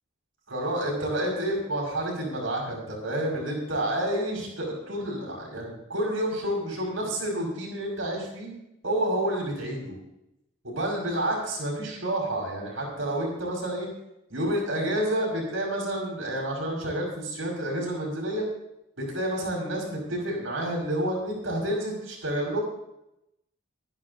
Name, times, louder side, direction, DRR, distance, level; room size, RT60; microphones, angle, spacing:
voice 1, 0.5-8.5 8.8-10.0 10.6-13.9 14.3-18.5 19.0-22.6, right 1 dB, 75° right, -1 dB, 5.8 m, -29 dB
24.5 x 10.5 x 2.8 m, 0.85 s
head